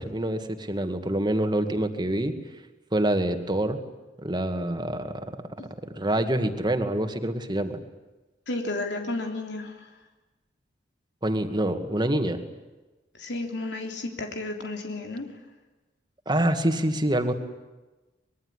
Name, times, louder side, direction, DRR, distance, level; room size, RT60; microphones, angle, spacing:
voice 1, 0.0-2.3 2.9-3.8 4.2-5.3 5.8-7.8 11.2-12.4 16.3-17.3, right 1 dB, 25° right, 7 dB, 2.3 m, -26 dB
voice 2, 8.5-9.9 13.1-15.3, left 2 dB, 85° left, 3 dB, 3.3 m, -32 dB
25.0 x 22.0 x 9.9 m, 1.1 s
head